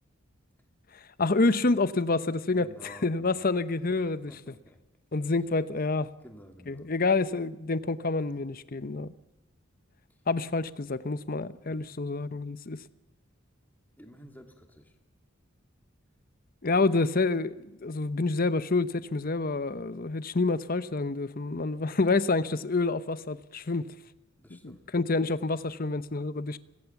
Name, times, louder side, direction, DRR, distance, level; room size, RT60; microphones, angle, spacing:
voice 1, 1.2-4.3 5.1-6.1 6.7-9.1 10.3-12.8 16.6-23.9 24.5-26.6, left 3 dB, 45° left, 0.8 m, -28 dB
voice 2, 2.5-3.6 3.9-4.8 5.2-5.3 6.2-6.9 11.7-11.9 14.0-15.0 24.4-24.9, equal, 10° left, 2.6 m, -52 dB
26.0 x 18.0 x 7.2 m
head